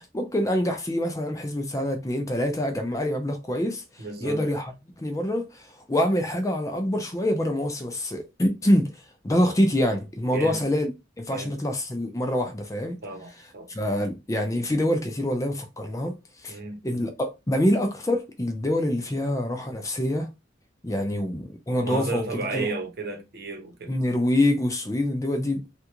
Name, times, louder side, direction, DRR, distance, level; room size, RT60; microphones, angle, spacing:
voice 1, 0.0-3.8 4.2-4.7 5.0-8.9 9.2-10.9 11.2-13.0 13.7-16.1 16.4-20.3 20.8-22.7 23.9-25.8, left 1 dB, 15° left, 0.5 m, -25 dB
voice 2, 4.0-4.4 10.3-10.6 11.3-11.6 13.0-13.7 16.5-16.8 21.1-21.4 21.8-23.9, right 3 dB, 55° right, 0.9 m, -34 dB
3.3 x 2.4 x 2.9 m
head